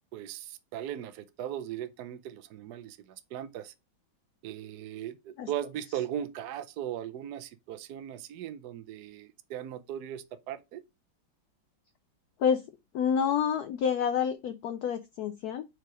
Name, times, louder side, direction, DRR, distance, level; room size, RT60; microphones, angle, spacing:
voice 1, 0.1-3.7 4.4-10.8, right 10 dB, 65° right, 1.0 m, -38 dB
voice 2, 12.9-15.6, left 7 dB, 75° left, 0.8 m, -28 dB
4.9 x 4.4 x 4.8 m
omnidirectional pair, 2.2 m